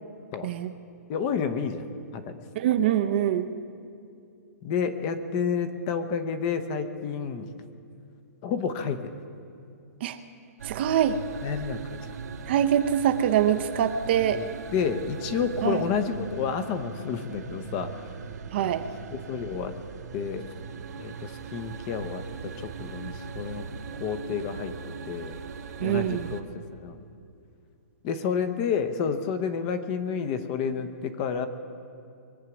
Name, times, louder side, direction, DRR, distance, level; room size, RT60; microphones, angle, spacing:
voice 1, 0.4-0.7 2.5-3.5 10.0-10.2 10.6-11.2 12.5-14.4 15.6-15.8 18.5-18.9 25.8-26.3, right 10 dB, 40° right, 8 dB, 0.6 m, -24 dB
voice 2, 1.1-1.8 2.1-2.4 4.6-7.5 8.4-9.2 11.4-12.0 14.3-18.1 18.6-18.8 19.1-19.8 20.1-20.5 21.0-23.6 24.0-25.4 25.8-26.4 26.7-27.0 28.0-31.5, left 6 dB, 25° left, 9 dB, 0.8 m, -30 dB
sound 1, 10.6-26.4, right 6 dB, 80° right, 1.4 m, -40 dB
23.0 x 8.2 x 6.1 m, 2.5 s
hypercardioid pair, 165°, 9 cm